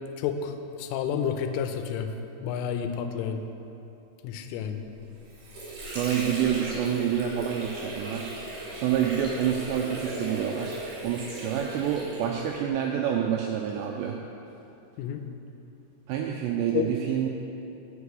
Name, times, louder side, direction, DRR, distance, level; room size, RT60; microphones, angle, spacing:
voice 1, 0.2-2.1 2.4-3.4 4.2-4.8 15.0-15.2 16.7-16.9, left 8 dB, 90° left, 6 dB, 3.2 m, -30 dB
Water / Sink (filling or washing), 5.0-12.7, right 2 dB, 45° right, 4.0 m, -37 dB
voice 2, 5.9-8.3 8.7-14.2 16.1-17.3, right 9 dB, 85° right, 1 dB, 2.5 m, -28 dB
9.5 x 6.2 x 8.3 m, 2.9 s
omnidirectional pair, 5.6 m